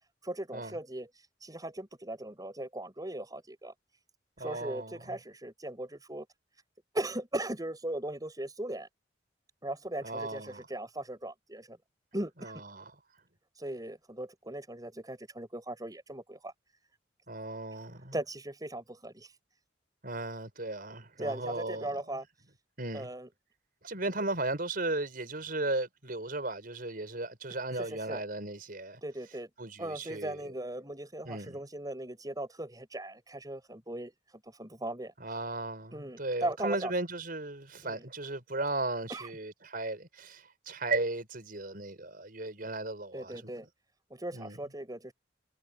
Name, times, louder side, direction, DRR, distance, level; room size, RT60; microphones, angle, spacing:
voice 1, 0.2-3.7 4.4-6.3 6.9-8.9 9.6-11.8 12.1-12.5 13.5-16.5 18.1-19.4 21.2-22.2 22.9-23.3 27.7-28.2 29.0-29.5 29.8-35.1 35.9-36.9 37.8-38.1 39.1-39.3 43.1-43.7 44.1-45.1, right 1 dB, 20° right, 7.5 m, -38 dB
voice 2, 4.4-5.0 10.0-10.7 12.4-12.9 17.3-18.1 20.0-21.9 22.8-23.1 23.8-29.0 29.6-30.4 31.3-31.6 35.2-43.5 44.3-44.6, right 2 dB, 50° right, 5.3 m, -36 dB
head